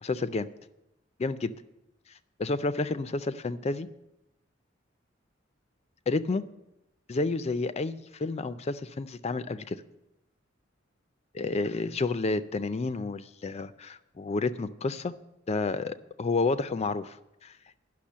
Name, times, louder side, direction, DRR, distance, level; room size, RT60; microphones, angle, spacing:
voice 1, 0.0-0.5 1.2-1.5 2.4-3.9 6.1-6.4 7.1-9.8 11.3-15.1 15.5-17.6, left 3 dB, 35° left, 13 dB, 0.4 m, -30 dB
10.0 x 6.1 x 7.3 m, 0.91 s
head